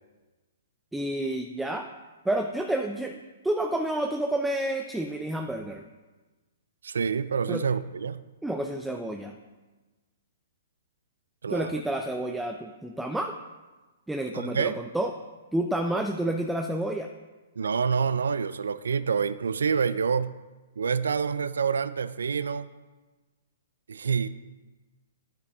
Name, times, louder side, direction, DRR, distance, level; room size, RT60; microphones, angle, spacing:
voice 1, 0.9-1.9 2.2-5.9 7.5-7.6 8.4-9.3 11.5-13.3 14.1-15.1 15.5-17.1, right 1 dB, 5° right, 3 dB, 0.6 m, -29 dB
voice 2, 6.8-8.3 11.4-11.8 14.3-14.8 17.6-20.4 20.8-22.7 23.9-24.3, right 6 dB, 75° right, 16 dB, 0.4 m, -27 dB
9.7 x 9.5 x 3.6 m, 1.2 s
hypercardioid pair, 125°, 0 cm